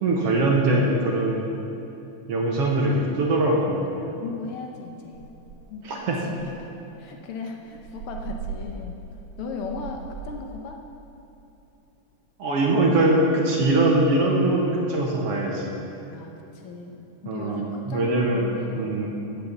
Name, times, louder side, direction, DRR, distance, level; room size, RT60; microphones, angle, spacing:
voice 1, 0.0-1.4 2.3-3.8 5.8-6.3 12.4-15.7 17.3-18.5 18.8-19.1, right 2 dB, 60° right, -1 dB, 1.9 m, -22 dB
voice 2, 4.0-5.2 5.7-6.1 6.6-6.7 7.0-9.0 9.4-10.8 16.1-19.0 19.3-19.5, left 4 dB, 90° left, 2 dB, 1.2 m, -37 dB
sound 1, 4.1-4.4 4.7-4.8 5.1-5.8 6.3-10.5, right 6 dB, 80° right, 2.4 m, -39 dB
15.5 x 7.0 x 6.9 m, 2.9 s
omnidirectional pair, 3.7 m